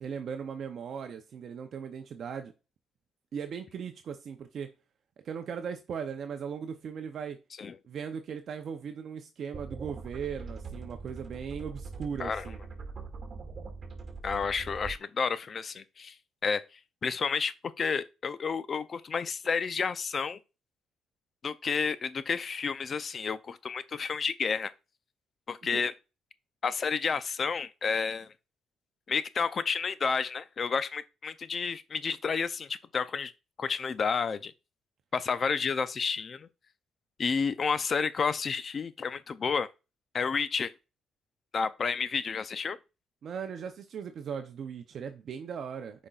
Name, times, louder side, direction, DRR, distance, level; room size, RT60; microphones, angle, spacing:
voice 1, 0.0-2.5 3.3-4.7 5.2-7.4 7.9-12.6 25.7-25.8 43.2-46.1, right 7 dB, 60° right, 0.6 m, -38 dB
sound 1, 9.5-14.9, right 4 dB, 40° right, 2.2 m, -42 dB
voice 2, 14.2-16.2 16.4-20.4 21.4-24.7 25.5-25.9 26.6-28.3 29.1-33.3 33.6-34.5 35.1-36.5 37.2-39.7 40.1-40.7 41.5-42.8, left 5 dB, 45° left, 0.5 m, -31 dB
8.5 x 5.2 x 2.4 m
cardioid pair, 90°, 0 cm